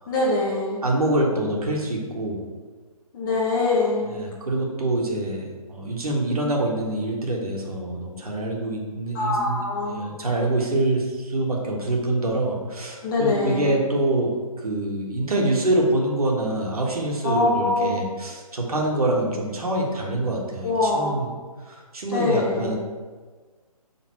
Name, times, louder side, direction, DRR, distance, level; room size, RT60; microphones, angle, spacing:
voice 1, 0.1-0.8 3.1-4.1 9.1-10.0 13.0-13.8 17.2-18.0 20.6-21.2 22.1-22.7, left 3 dB, 35° left, -4 dB, 1.0 m, -23 dB
voice 2, 0.8-2.4 4.0-21.3 21.7-22.8, right 1 dB, 75° right, -1 dB, 1.5 m, -25 dB
6.3 x 3.8 x 4.4 m, 1.4 s
figure-of-eight pair, 145°, 19 cm